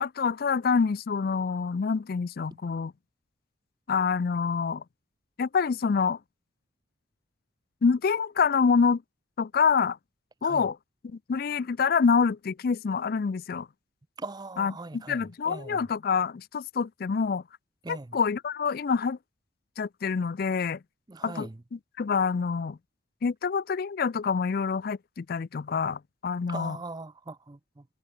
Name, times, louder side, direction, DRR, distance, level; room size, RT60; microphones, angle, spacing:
voice 1, 0.0-2.9 3.9-4.8 5.4-6.2 7.8-9.0 9.4-10.0 10.4-10.8 11.0-13.7 14.6-17.4 17.9-19.2 19.8-20.8 21.2-22.8 23.2-26.8, left 5 dB, 45° left, 0.4 m, -26 dB
voice 2, 14.2-15.8 17.8-18.2 21.1-21.6 26.5-27.9, right 3 dB, 20° right, 0.5 m, -40 dB
head